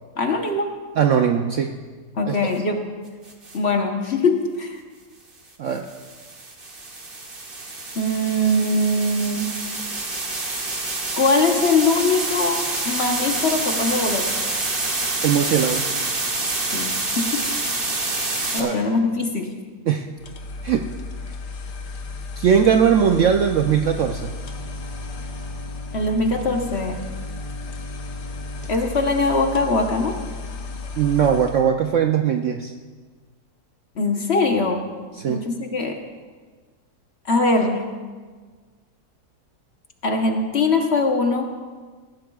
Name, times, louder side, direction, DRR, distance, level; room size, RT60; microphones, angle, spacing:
voice 1, 0.2-0.7 2.2-2.8 3.5-4.8 7.9-9.5 11.1-12.6 12.8-14.3 16.7-17.5 18.5-19.6 25.9-27.0 28.7-30.2 34.0-34.8 35.3-36.0 37.3-37.9 40.0-41.4, left 2 dB, 45° left, 3 dB, 1.1 m, -21 dB
voice 2, 1.0-1.7 2.3-2.5 5.6-5.9 15.2-15.9 18.6-18.8 19.9-20.1 20.6-20.9 22.4-24.3 31.0-32.7 35.2-35.4, right 8 dB, 65° right, 5 dB, 0.7 m, -20 dB
sound 1, 3.3-3.6 5.7-18.6, right 2 dB, 35° right, 1.6 m, -27 dB
sound 2, 20.2-31.7, left 4 dB, 85° left, 1.5 m, -34 dB
sound 3, 24.0-28.7, right 5 dB, 5° left, 2.0 m, -41 dB
18.5 x 15.0 x 2.3 m, 1.5 s
omnidirectional pair, 1.7 m